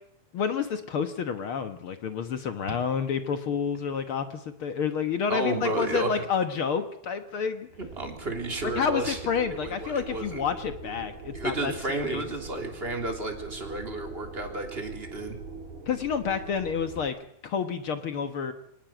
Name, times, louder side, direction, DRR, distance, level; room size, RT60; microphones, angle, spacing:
voice 1, 0.3-7.7 8.6-12.2 15.9-17.2 17.4-18.5, left 6 dB, 65° left, 8 dB, 1.3 m, -29 dB
voice 2, 5.3-6.3 7.8-9.2 9.5-10.4 11.3-15.4, right 2 dB, 15° right, 3 dB, 3.2 m, -32 dB
sound 1, 7.7-17.1, right 4 dB, 65° right, 6.4 m, -42 dB
24.0 x 19.0 x 9.0 m, 0.71 s
omnidirectional pair, 4.3 m